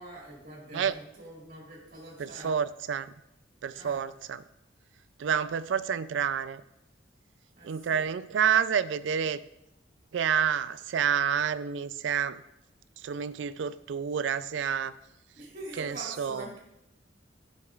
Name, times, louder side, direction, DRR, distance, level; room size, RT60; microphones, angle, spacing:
voice 1, 0.0-2.5 3.7-4.0 7.6-8.1 15.4-16.6, right 1 dB, 45° right, -4 dB, 2.1 m, -44 dB
voice 2, 2.2-3.1 3.6-4.4 5.2-6.6 7.6-9.4 10.1-12.4 13.0-14.9 15.8-16.4, right 7 dB, 75° right, 15 dB, 0.3 m, -29 dB
12.0 x 5.9 x 2.4 m, 0.86 s
head